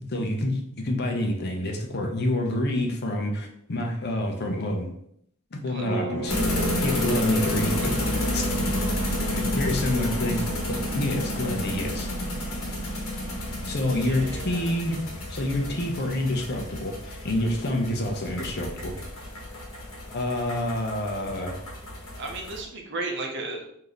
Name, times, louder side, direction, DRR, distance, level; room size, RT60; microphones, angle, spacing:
voice 1, 0.1-4.9 5.5-6.4 6.8-8.0 8.3-8.8 9.3-12.1 13.7-15.0 15.3-18.9 20.1-21.6, left 1 dB, 50° left, 3 dB, 0.6 m, -28 dB
voice 2, 5.7-6.4 14.0-14.7 22.2-23.6, right 2 dB, 55° right, 2 dB, 0.7 m, -35 dB
sound 1, 5.8-10.0, right 2 dB, 5° left, 1.1 m, -37 dB
sound 2, 6.3-22.6, left 1 dB, 85° left, 1.1 m, -30 dB
3.2 x 2.7 x 3.9 m, 0.70 s
head